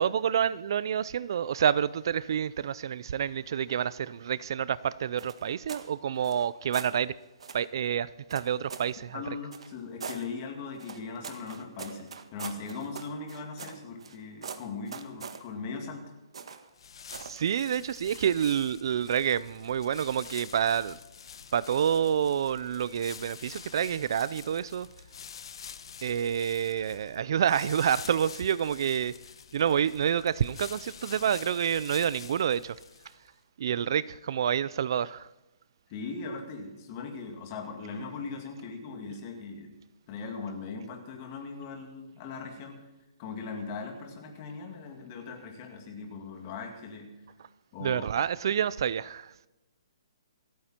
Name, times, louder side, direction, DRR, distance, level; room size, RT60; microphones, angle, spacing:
voice 1, 0.0-7.1 7.5-9.2 17.2-21.0 21.5-24.9 26.0-29.1 29.5-32.7 33.6-35.3 47.8-49.3, right 8 dB, 45° right, 0.4 m, -28 dB
sound 1, 5.2-5.9 6.2-6.9 7.4-7.7 8.3-8.9 9.5-10.2 10.8-14.2 14.4-15.4 16.3-16.7 17.1-17.4, right 6 dB, 70° right, 1.7 m, -42 dB
voice 2, 9.1-16.1 35.9-39.7 40.1-42.9 43.2-47.1 47.7-48.0, left 4 dB, 25° left, 2.3 m, -39 dB
sound 2, 16.7-33.3, left 7 dB, 55° left, 1.0 m, -47 dB
27.0 x 9.4 x 4.4 m
hypercardioid pair, 170°, 3 cm